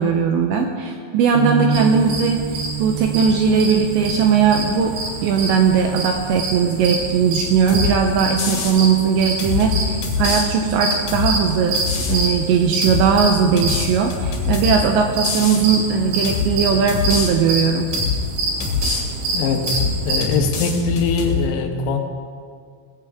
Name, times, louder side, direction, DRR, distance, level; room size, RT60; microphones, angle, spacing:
voice 1, 0.0-2.4 2.8-5.0 5.2-11.8 12.1-17.9, right 6 dB, 85° right, 3 dB, 2.6 m, -18 dB
sound 1, 1.3-7.4, right 4 dB, 25° left, 1.4 m, -29 dB
sound 2, 1.7-20.2, right 2 dB, 60° right, 4.6 m, -27 dB
sound 3, 7.7-7.9 8.4-8.8 9.4-10.4 11.1-11.3 11.7-12.2 12.8-13.1 13.6-14.8 15.2-15.6 16.2-16.5 16.9-17.3 17.9-18.2 18.6-19.0 19.7-19.9 20.2-21.4, left 5 dB, 50° left, 3.5 m, -24 dB
voice 2, 19.3-22.0, left 4 dB, 90° left, 4 dB, 4.0 m, -22 dB
20.0 x 16.0 x 3.6 m, 2.1 s
omnidirectional pair, 5.9 m